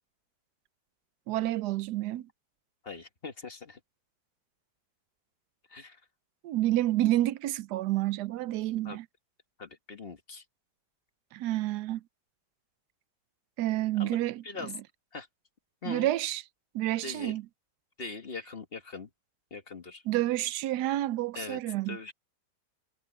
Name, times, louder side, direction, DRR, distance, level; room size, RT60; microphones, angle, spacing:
voice 1, 1.3-2.3 6.4-9.1 11.3-12.0 13.6-14.7 15.9-16.4 16.7-17.4 20.1-22.1, right 15 dB, 75° right, 1.1 m, -29 dB
voice 2, 2.8-3.8 5.7-6.0 8.9-9.0 9.6-10.4 14.0-14.2 14.4-14.7 15.1-15.3 15.8-16.1 17.0-17.4 18.0-19.1 19.5-20.0 21.4-21.6 21.9-22.1, left 4 dB, 35° left, 1.6 m, -41 dB
omnidirectional pair, 1.8 m